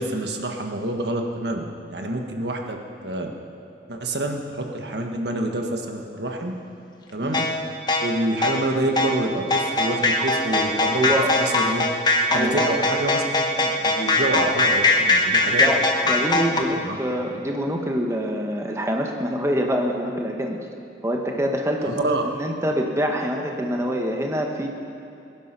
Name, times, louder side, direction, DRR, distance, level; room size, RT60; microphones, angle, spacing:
voice 1, 0.0-1.6 1.9-2.8 3.0-3.3 3.9-6.5 7.1-7.4 8.0-11.1 11.4-11.8 12.3-15.6 16.6-17.0 21.8-22.2, right 1 dB, 70° right, 3 dB, 1.6 m, -27 dB
sound 1, 7.3-16.6, left 2 dB, 25° left, 1.2 m, -21 dB
voice 2, 11.0-11.3 12.3-12.7 15.6-20.6 21.0-24.7, equal, 15° right, 1 dB, 1.2 m, -25 dB
21.0 x 10.5 x 6.0 m, 2.7 s
head